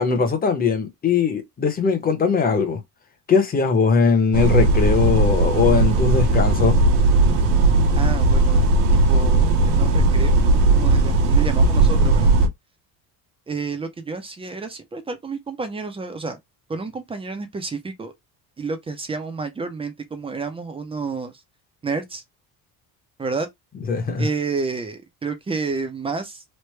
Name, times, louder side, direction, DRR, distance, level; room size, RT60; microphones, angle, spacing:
voice 1, 0.0-2.8 3.3-6.8 23.9-24.3, left 5 dB, 20° left, 0.7 m, -20 dB
sound 1, 4.3-12.5, right 2 dB, 80° right, 0.8 m, -17 dB
voice 2, 7.9-8.7 8.9-10.4 10.7-12.3 13.5-16.4 16.7-18.1 18.6-21.3 21.8-22.2 23.2-23.5 24.2-26.4, right 4 dB, 15° right, 0.3 m, -30 dB
3.2 x 2.1 x 3.1 m
cardioid pair, 145°, 41 cm